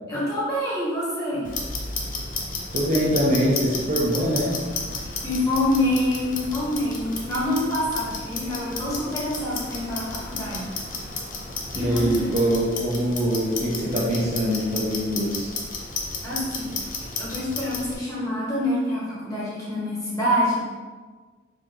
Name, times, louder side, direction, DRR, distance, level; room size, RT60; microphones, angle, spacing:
voice 1, 0.1-1.4 5.2-10.7 11.7-12.3 16.2-20.6, left 1 dB, 20° left, -8 dB, 1.2 m, -26 dB
Clock, 1.4-17.9, left 3 dB, 45° left, 0.5 m, -33 dB
voice 2, 2.7-4.6 11.7-15.5, equal, 40° right, -4 dB, 0.6 m, -23 dB
3.6 x 2.5 x 2.9 m, 1.4 s
head